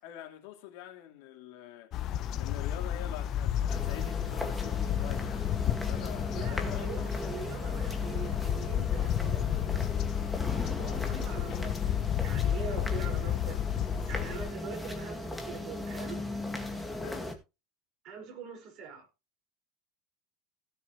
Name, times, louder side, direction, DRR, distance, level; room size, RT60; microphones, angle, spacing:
voice 1, 0.0-1.9 2.4-5.5 5.8-6.8 17.0-17.3, left 12 dB, 70° left, 3.0 m, -45 dB
sound 1, 1.9-14.5, left 11 dB, 40° left, 0.7 m, -32 dB
sound 2, 3.7-17.3, left 1 dB, ahead, 1.9 m, -37 dB
voice 2, 6.3-10.1 10.7-13.6 14.1-16.3 18.0-19.1, right 6 dB, 45° right, 5.5 m, -43 dB
17.0 x 6.8 x 3.2 m
cardioid pair, 155°, 0 cm